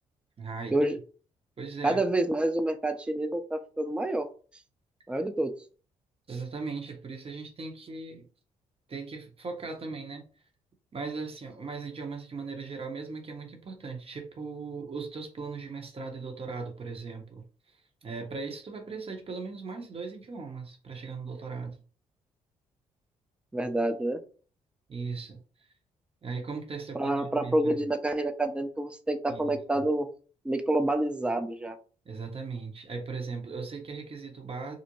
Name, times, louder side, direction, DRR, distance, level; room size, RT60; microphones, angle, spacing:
voice 1, 0.4-0.7 1.6-2.0 6.3-8.3 8.9-10.2 10.9-17.5 18.0-21.8 24.9-25.4 26.2-27.9 29.3-29.8 32.0-34.8, right 4 dB, 40° right, 4 dB, 0.9 m, -38 dB
voice 2, 1.8-4.3 5.1-5.6 23.5-24.2 26.9-30.1 30.4-31.8, right 1 dB, 5° right, 8 dB, 0.4 m, -28 dB
2.5 x 2.1 x 2.9 m, 0.39 s
supercardioid pair, 50°, 15 cm